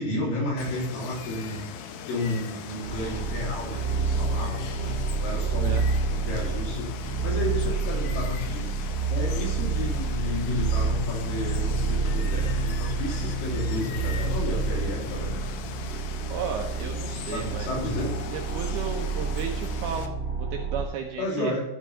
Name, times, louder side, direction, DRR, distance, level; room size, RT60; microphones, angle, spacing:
voice 1, 0.0-1.7 2.1-5.8 6.1-8.7 9.1-15.3 17.3-18.1 21.2-21.6, left 2 dB, 50° left, -3 dB, 4.3 m, -32 dB
Water, 0.6-20.1, left 8 dB, 80° left, 2.1 m, -40 dB
sound 1, 2.8-20.8, right 4 dB, 50° right, 2.7 m, -28 dB
voice 2, 16.3-17.7 18.3-21.5, right 7 dB, 75° right, 2 dB, 2.4 m, -34 dB
13.5 x 5.2 x 5.6 m, 0.95 s
omnidirectional pair, 5.2 m